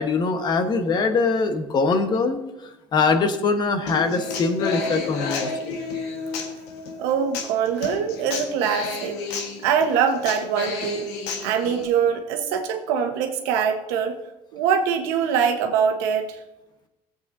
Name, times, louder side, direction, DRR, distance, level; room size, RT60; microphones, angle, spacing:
voice 1, 0.0-2.4 2.9-5.8, left 4 dB, 40° left, 7 dB, 1.2 m, -22 dB
Human voice / Acoustic guitar, 3.9-11.9, left 4 dB, 80° left, 1.4 m, -31 dB
voice 2, 7.0-9.2 9.6-11.1 11.4-14.1 14.5-16.3, right 7 dB, 85° right, 5 dB, 1.2 m, -23 dB
16.0 x 7.9 x 2.7 m, 0.94 s
supercardioid pair, 110°, 11 cm